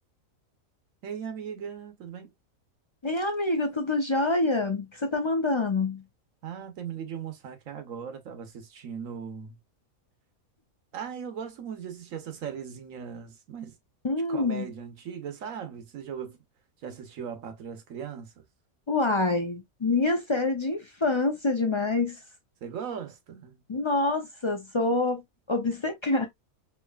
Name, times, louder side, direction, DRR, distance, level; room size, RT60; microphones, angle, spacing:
voice 1, 1.0-2.3 6.4-9.6 10.9-13.8 14.3-16.4 16.8-18.4 22.6-23.6, right 7 dB, 70° right, 1.2 m, -38 dB
voice 2, 3.0-6.0 14.0-14.7 18.9-22.2 23.7-25.2 25.5-26.2, left 2 dB, 45° left, 0.4 m, -26 dB
4.7 x 2.9 x 2.3 m
omnidirectional pair, 1.5 m